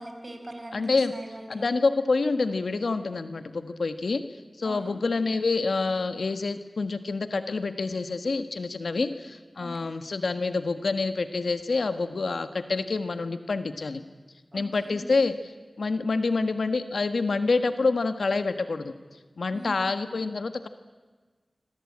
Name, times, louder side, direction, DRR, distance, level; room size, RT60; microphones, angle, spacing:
voice 1, 0.0-1.7 4.6-4.9 8.9-9.0 9.6-9.9 14.5-15.1 19.5-19.8, right 1 dB, 30° right, 5 dB, 5.1 m, -42 dB
voice 2, 0.7-1.1 1.5-4.2 4.6-14.0 14.5-15.5 15.8-18.9 19.4-20.7, left 3 dB, 85° left, 10 dB, 1.5 m, -27 dB
26.5 x 24.0 x 8.7 m, 1.4 s
wide cardioid pair, 65°, 0 cm